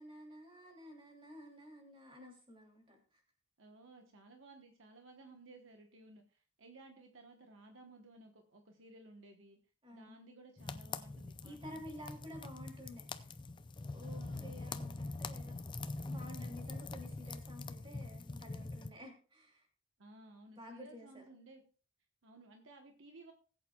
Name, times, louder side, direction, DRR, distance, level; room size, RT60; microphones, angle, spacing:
voice 1, 0.0-3.2 9.8-10.2 11.4-13.4 13.9-15.6 16.0-19.7 20.5-21.2, left 1 dB, 25° right, 1 dB, 3.0 m, -52 dB
voice 2, 3.6-9.6 9.9-12.0 14.0-14.9 20.0-21.6 22.2-23.3, right 2 dB, 60° right, 3 dB, 1.1 m, -58 dB
sound 1, 10.6-18.9, left 3 dB, 20° left, 0.5 m, -44 dB
20.0 x 8.3 x 2.3 m, 0.40 s
head